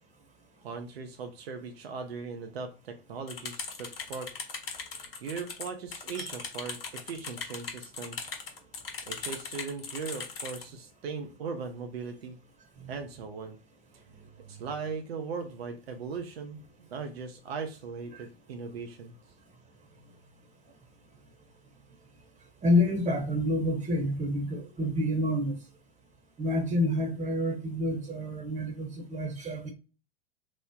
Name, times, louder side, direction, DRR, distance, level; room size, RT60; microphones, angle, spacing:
voice 1, 0.6-4.3 5.2-8.3 9.1-12.4 12.9-13.6 13.9-14.0 14.5-19.1, right 5 dB, 75° right, 0.7 m, -39 dB
sound 1, 3.3-10.6, left 5 dB, 65° left, 1.1 m, -39 dB
voice 2, 22.6-25.6 26.4-29.7, left 1 dB, 20° right, 0.9 m, -28 dB
3.1 x 2.0 x 3.6 m
hypercardioid pair, 95°, 31 cm